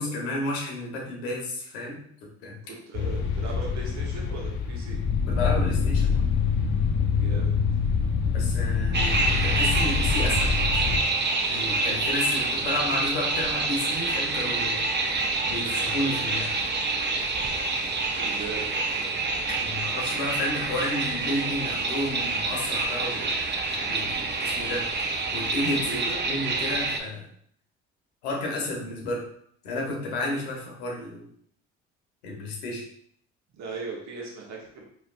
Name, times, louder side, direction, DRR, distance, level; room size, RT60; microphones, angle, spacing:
voice 1, 0.0-2.0 2.4-2.6 5.3-6.3 8.3-11.0 11.5-14.8 15.4-16.5 19.6-27.3 28.2-29.3 29.6-31.3 32.2-32.8, left 1 dB, 90° left, -1 dB, 1.1 m, -32 dB
voice 2, 2.6-5.0 7.1-7.6 18.2-18.6 25.7-26.3 33.5-34.8, right 3 dB, 55° right, -2 dB, 1.2 m, -38 dB
sound 1, 2.9-11.0, left 6 dB, 65° left, 0.7 m, -25 dB
sound 2, 8.9-27.0, right 3 dB, 35° right, 0.7 m, -27 dB
4.4 x 3.1 x 2.5 m, 0.65 s
supercardioid pair, 65°, 32 cm